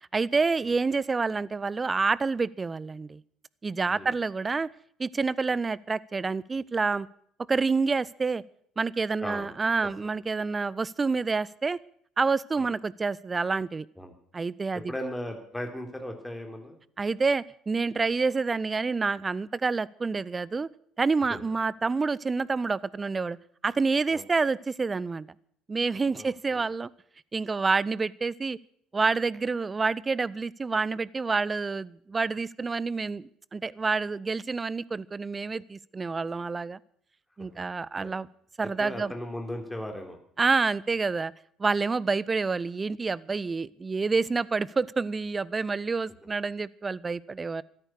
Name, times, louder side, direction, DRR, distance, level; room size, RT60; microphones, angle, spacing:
voice 1, 0.1-3.2 3.6-4.7 5.0-7.1 7.5-8.4 8.8-11.8 12.2-13.9 14.3-14.9 17.0-20.7 21.0-23.4 23.6-25.3 25.7-26.9 27.3-28.6 28.9-36.8 37.4-38.3 38.6-39.1 40.4-41.3 41.6-47.6, right 4 dB, 25° right, 0.6 m, -28 dB
voice 2, 14.7-16.8 21.3-21.4 24.1-24.2 25.9-26.7 37.5-37.6 38.0-38.1 38.6-40.2, left 1 dB, 5° left, 3.4 m, -37 dB
14.5 x 13.5 x 6.6 m
figure-of-eight pair, 55°, 0 cm